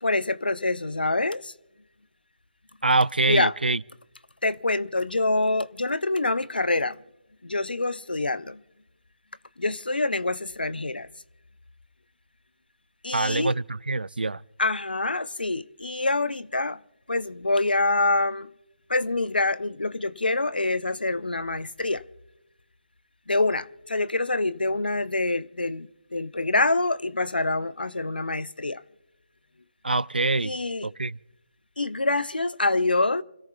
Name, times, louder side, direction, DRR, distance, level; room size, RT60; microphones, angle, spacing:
voice 1, 0.0-1.5 3.3-3.5 4.4-7.0 7.4-8.6 9.6-11.1 13.0-13.5 14.6-16.8 17.1-18.5 18.9-22.0 23.3-28.8 30.4-30.9 31.8-33.2, left 2 dB, 80° left, 0.7 m, -26 dB
voice 2, 2.8-3.8 13.1-14.4 29.8-30.5 30.8-31.2, right 3 dB, 80° right, 0.4 m, -24 dB
29.0 x 17.0 x 2.3 m
figure-of-eight pair, 155°, 5 cm